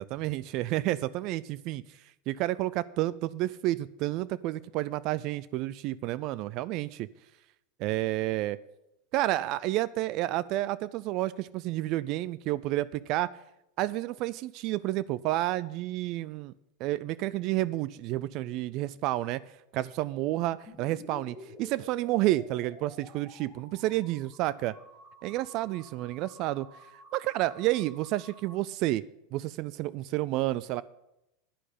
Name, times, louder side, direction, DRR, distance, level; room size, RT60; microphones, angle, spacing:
voice 1, 0.0-2.0 2.3-7.1 7.8-8.6 9.1-13.3 13.8-16.5 16.8-19.4 19.7-24.7 25.2-26.7 27.1-29.0 29.3-30.8, right 16 dB, 50° right, 19 dB, 0.3 m, -30 dB
sound 1, 20.7-28.5, left 1 dB, 15° left, 2.3 m, -52 dB
10.0 x 6.3 x 8.5 m, 0.87 s
supercardioid pair, 125°, 0 cm